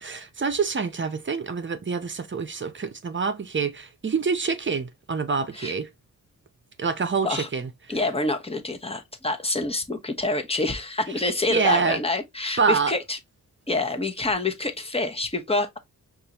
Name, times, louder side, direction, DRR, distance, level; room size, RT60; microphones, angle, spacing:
voice 1, 0.0-5.9 6.8-7.7 11.5-12.0 12.6-12.9, right 5 dB, 35° right, 0.7 m, -26 dB
voice 2, 7.9-13.2 13.7-15.8, left 2 dB, 15° left, 0.9 m, -27 dB
5.3 x 2.6 x 2.9 m
cardioid pair, 75°, 34 cm